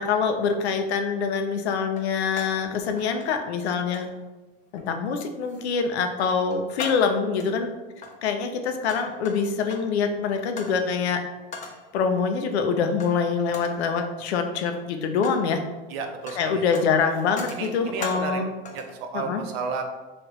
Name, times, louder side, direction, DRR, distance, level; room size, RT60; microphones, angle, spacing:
voice 1, 0.0-4.1 4.7-7.7 8.2-11.2 11.9-15.6 16.4-18.5 19.1-19.4, left 5 dB, 90° left, 6 dB, 0.5 m, -25 dB
sound 1, 1.9-2.7 3.0-3.6 3.9-4.1 4.7-5.1 5.4-6.0 6.3-7.5 7.9-10.0 10.6-10.8 11.5-11.9 13.0-13.2 13.5-13.9 14.6-15.5 15.7-18.4 18.7-19.0, left 4 dB, 25° left, 0.4 m, -40 dB
voice 2, 15.9-16.6 17.5-18.4 18.7-19.8, right 5 dB, 70° right, 5 dB, 0.6 m, -32 dB
3.1 x 2.4 x 3.0 m, 1.2 s
supercardioid pair, 115°, 32 cm